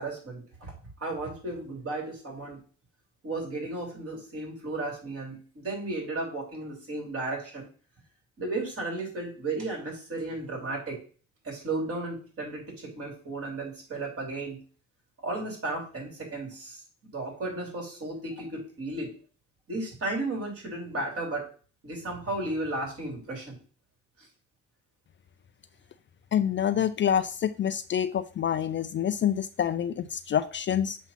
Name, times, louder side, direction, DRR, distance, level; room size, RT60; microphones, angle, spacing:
voice 1, 0.0-2.6 3.2-7.7 8.4-11.0 11.4-14.6 15.2-16.8 17.1-19.1 19.7-21.5 21.8-23.6, right 2 dB, 50° right, 0 dB, 3.3 m, -34 dB
voice 2, 26.3-31.0, left 9 dB, 40° left, 12 dB, 0.4 m, -27 dB
7.1 x 2.8 x 5.7 m, 0.39 s
cardioid pair, 90°, 30 cm